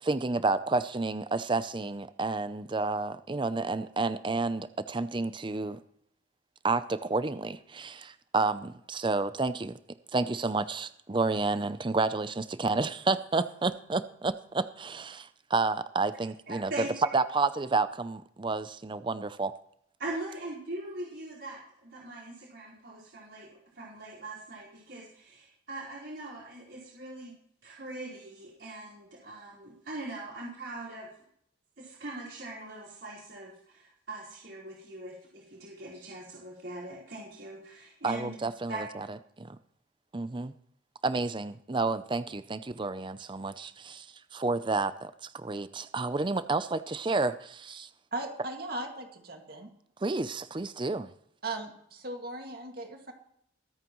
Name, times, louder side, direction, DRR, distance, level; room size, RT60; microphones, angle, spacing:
voice 1, 0.0-5.8 6.6-9.8 10.1-16.7 17.1-19.5 38.0-39.1 39.4-39.6 40.1-40.5 41.0-44.1 44.3-47.9 50.0-51.1, right 3 dB, 25° right, 13 dB, 0.5 m, -30 dB
voice 2, 16.5-16.9 20.0-23.5 23.7-27.3 27.6-31.1 31.8-38.3 38.7-38.8, right 2 dB, 70° right, -7 dB, 4.5 m, -41 dB
voice 3, 48.1-49.7 51.4-53.1, right 2 dB, 55° right, 3 dB, 2.1 m, -38 dB
23.0 x 9.0 x 3.1 m, 0.70 s
head